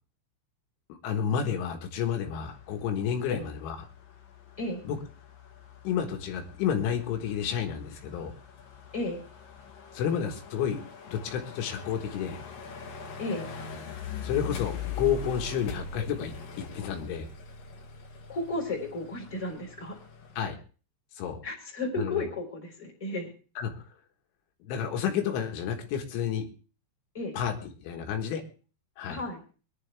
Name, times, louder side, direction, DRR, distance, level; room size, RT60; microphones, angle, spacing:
voice 1, 0.9-3.9 4.9-5.0 5.9-8.3 9.9-10.8 11.1-12.4 14.2-17.3 20.4-20.6 21.2-21.4 22.0-22.2 23.6-23.9 24.6-26.5 27.3-27.6 27.8-28.4 29.0-29.2, left 8 dB, 75° left, 3 dB, 3.9 m, -30 dB
sound 1, 2.5-20.4, left 5 dB, 55° left, 3.1 m, -43 dB
voice 2, 18.3-20.0 21.4-23.3 27.1-27.4 29.1-29.4, left 2 dB, 10° left, -1 dB, 3.3 m, -33 dB
23.5 x 11.0 x 3.4 m, 0.38 s
omnidirectional pair, 5.6 m